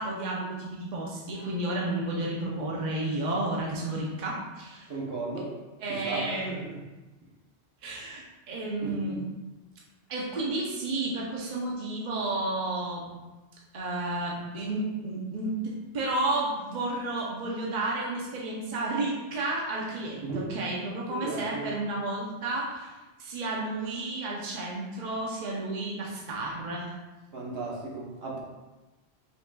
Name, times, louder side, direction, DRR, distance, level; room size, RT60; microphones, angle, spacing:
voice 1, 0.0-4.9 5.8-6.5 7.8-9.2 10.1-13.1 13.7-22.9 23.2-26.9, right 2 dB, 50° right, -3 dB, 0.8 m, -32 dB
voice 2, 4.9-5.5 6.0-6.7 8.8-9.2 20.2-20.5 21.1-21.7 27.3-28.4, right 3 dB, 70° right, -4 dB, 1.2 m, -35 dB
5.4 x 4.1 x 2.3 m, 1.1 s
omnidirectional pair, 1.1 m